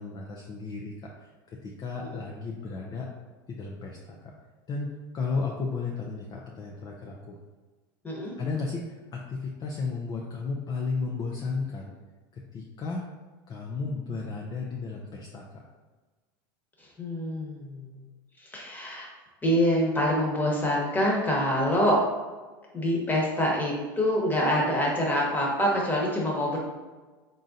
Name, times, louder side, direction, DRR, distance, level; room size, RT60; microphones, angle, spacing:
voice 1, 0.0-3.1 3.5-4.3 4.7-7.4 8.4-11.9 12.3-13.0 13.5-15.6, left 4 dB, 35° left, -2 dB, 0.6 m, -34 dB
voice 2, 8.0-8.4 16.8-18.0 18.4-19.1 19.4-22.0 22.7-26.6, equal, 15° left, -2 dB, 1.3 m, -26 dB
3.8 x 3.7 x 2.7 m, 1.3 s
supercardioid pair, 105°, 12 cm